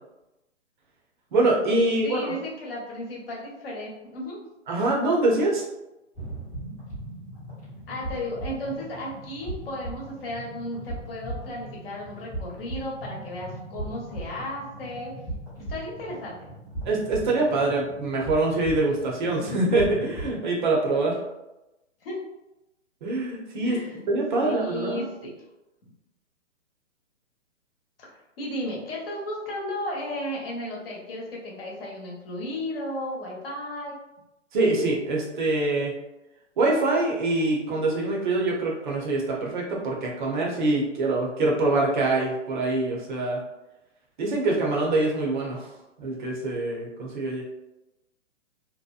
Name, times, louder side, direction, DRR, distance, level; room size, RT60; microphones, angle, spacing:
voice 1, 1.3-2.3 4.7-5.6 16.8-21.2 23.0-23.8 24.1-25.1 34.5-35.9 36.6-43.4 44.2-45.7 46.0-47.4, right 2 dB, 40° right, -2 dB, 0.7 m, -24 dB
voice 2, 2.0-4.4 7.9-15.1 15.7-16.5 22.0-22.2 23.6-24.0 24.4-25.3 28.0-28.1 28.4-33.9, left 1 dB, 45° left, -4 dB, 1.0 m, -34 dB
sound 1, 6.1-20.4, right 1 dB, 5° left, 0.4 m, -38 dB
2.8 x 2.1 x 2.3 m, 0.96 s
hypercardioid pair, 135°, 38 cm